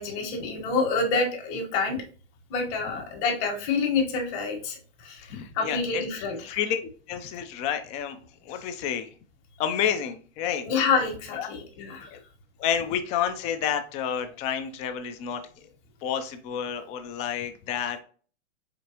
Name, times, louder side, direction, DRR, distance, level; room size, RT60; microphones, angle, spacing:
voice 1, 0.0-2.0 2.5-6.4 10.6-12.1, left 4 dB, 40° left, 1 dB, 1.5 m, -27 dB
voice 2, 5.2-6.0 6.4-9.1 9.6-10.6 11.3-11.5 12.1-12.2 12.6-15.4 16.0-18.0, left 8 dB, 20° left, 8 dB, 0.3 m, -30 dB
5.1 x 3.5 x 2.8 m, 0.41 s
hypercardioid pair, 145°, 35 cm